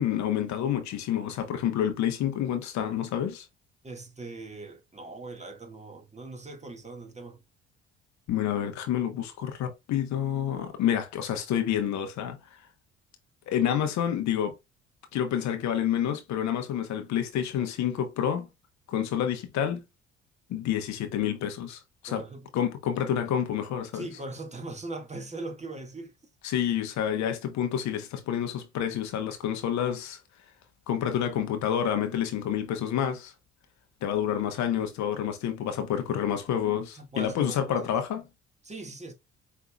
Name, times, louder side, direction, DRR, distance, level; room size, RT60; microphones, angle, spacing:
voice 1, 0.0-3.5 8.3-12.4 13.5-14.5 15.1-18.5 18.9-19.8 20.5-22.2 22.5-24.1 26.4-30.2 30.9-33.3 34.0-38.2, left 9 dB, 60° left, 1.1 m, -28 dB
voice 2, 3.8-7.4 22.1-22.5 23.9-26.1 37.0-37.9 38.6-39.1, right 2 dB, 20° right, 1.8 m, -40 dB
5.2 x 3.5 x 2.3 m
hypercardioid pair, 55°, 31 cm